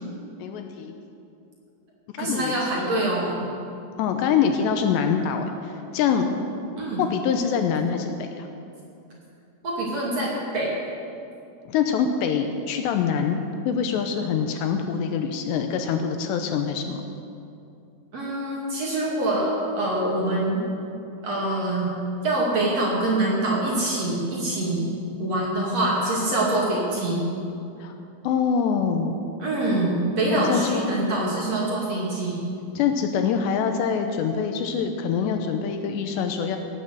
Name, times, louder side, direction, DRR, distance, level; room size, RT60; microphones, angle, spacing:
voice 1, 0.4-0.9 2.1-2.5 2.9-3.1 4.0-6.3 7.0-8.5 11.7-17.0 27.8-27.9 28.2-29.1 30.5-30.9 32.8-36.6, left 7 dB, 80° left, 6 dB, 2.8 m, -25 dB
voice 2, 2.2-3.4 6.8-7.0 9.6-10.7 18.1-20.6 21.2-21.9 22.2-24.9 25.2-27.2 29.4-32.4, right 1 dB, 40° right, -4 dB, 3.1 m, -25 dB
17.5 x 8.8 x 7.8 m, 2.6 s
omnidirectional pair, 5.3 m